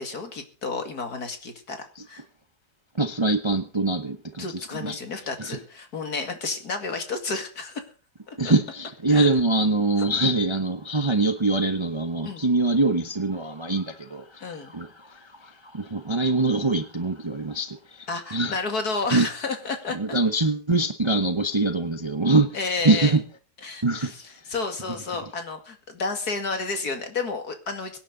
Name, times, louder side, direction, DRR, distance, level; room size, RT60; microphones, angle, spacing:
voice 1, 0.0-2.2 4.4-7.8 8.3-8.5 9.1-9.3 12.2-12.4 14.4-14.7 18.1-20.2 22.5-23.2 23.6-28.0, left 4 dB, 60° left, 2.7 m, -31 dB
voice 2, 2.9-4.5 4.8-5.0 5.4-5.6 8.4-18.6 19.1-19.3 19.9-22.6 22.8-23.2 23.8-24.1, right 2 dB, 20° right, 0.8 m, -24 dB
23.5 x 10.0 x 3.9 m
omnidirectional pair, 1.8 m